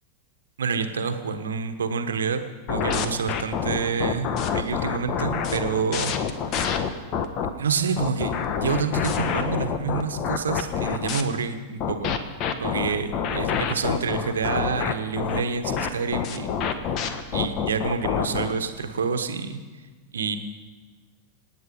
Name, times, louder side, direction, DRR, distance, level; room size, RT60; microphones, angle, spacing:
voice 1, 0.6-2.4 2.7-6.1 6.5-6.8 7.6-12.2 12.6-16.5 17.3-19.6 20.1-20.4, right 5 dB, 70° right, 8 dB, 1.3 m, -28 dB
sound 1, 2.7-7.5 8.0-11.2 11.8-18.5, left 7 dB, 40° left, 1.3 m, -27 dB
27.5 x 9.2 x 5.3 m, 1.4 s
figure-of-eight pair, 90°, 0 cm